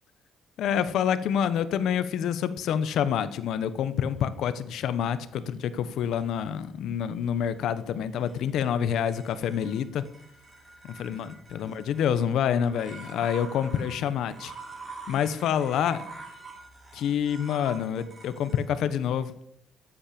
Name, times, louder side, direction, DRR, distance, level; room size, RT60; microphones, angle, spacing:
voice 1, 0.6-10.0 10.8-14.5 15.1-16.0 16.9-19.3, left 8 dB, 80° left, 13 dB, 1.1 m, -27 dB
sound 1, 4.0-18.6, right 3 dB, 25° right, 7.3 m, -48 dB
13.5 x 8.9 x 7.0 m, 0.71 s
cardioid pair, 90°, 0 cm